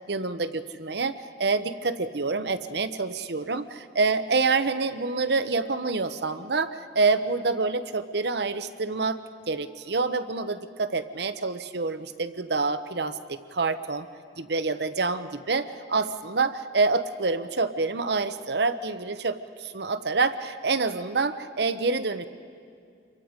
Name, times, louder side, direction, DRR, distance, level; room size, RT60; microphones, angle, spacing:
voice 1, 0.1-9.2 9.5-14.1 14.4-22.3, right 4 dB, 65° right, 11 dB, 0.9 m, -27 dB
27.5 x 23.5 x 5.1 m, 2.3 s
head